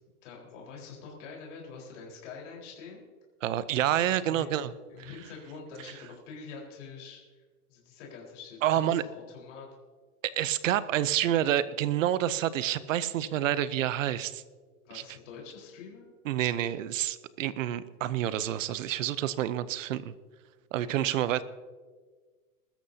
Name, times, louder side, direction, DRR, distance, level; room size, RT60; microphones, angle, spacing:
voice 1, 0.2-3.0 4.0-4.5 4.9-7.2 7.7-9.7 14.8-16.0, left 5 dB, 50° left, -2 dB, 4.4 m, -45 dB
voice 2, 3.4-4.7 5.0-5.1 8.6-9.0 10.2-14.4 14.9-15.0 16.2-20.1 20.7-21.4, right 12 dB, 55° right, 16 dB, 0.7 m, -28 dB
21.0 x 13.5 x 2.8 m, 1.5 s
hypercardioid pair, 155°, 45 cm